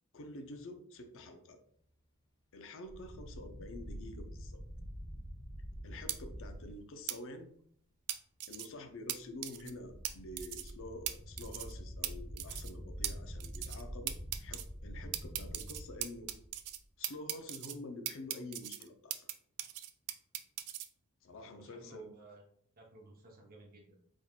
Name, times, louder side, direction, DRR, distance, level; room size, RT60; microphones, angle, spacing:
voice 1, 0.1-1.6 2.5-4.6 5.8-7.5 8.5-16.3 17.0-19.3 21.2-22.1, left 1 dB, 60° left, 6 dB, 0.6 m, -48 dB
sound 1, 2.8-6.7 9.5-16.8, equal, 20° left, 0.9 m, -46 dB
sound 2, 6.1-6.2 7.1-7.2 8.1-8.7 9.1-9.2 9.4-9.7 10.0-10.1 10.4-10.7 11.1-11.2 11.4-11.7 12.0-12.1 12.4-12.7 13.0-13.1 13.4-13.8 14.1-14.6 15.1-16.8 17.0-17.7 18.1-19.3 19.6-20.9, right 13 dB, 80° right, 0.4 m, -38 dB
voice 2, 21.5-22.4 22.8-24.0, right 2 dB, 40° right, 0 dB, 0.8 m, -54 dB
4.4 x 3.6 x 2.4 m, 0.66 s
head